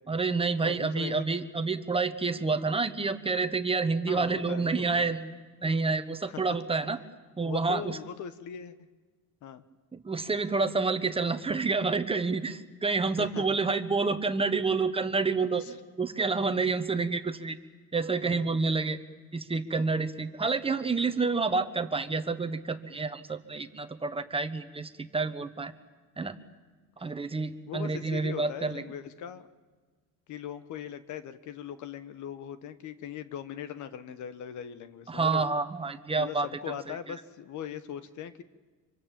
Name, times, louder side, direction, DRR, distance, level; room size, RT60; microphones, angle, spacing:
voice 1, 0.1-5.3 5.6-7.0 7.4-8.0 9.9-17.6 17.9-19.0 19.3-25.7 26.2-26.4 27.0-28.8 35.1-36.5, right 4 dB, 20° right, 9 dB, 1.2 m, -28 dB
voice 2, 0.6-1.2 4.1-5.1 6.3-6.4 7.4-8.7 9.4-9.6 13.2-13.6 15.6-15.7 16.3-16.7 18.2-18.7 27.7-29.5 30.3-35.5 36.1-38.4, left 9 dB, 70° left, 12 dB, 1.3 m, -40 dB
25.5 x 24.5 x 7.5 m, 1.4 s
cardioid pair, 115°, 31 cm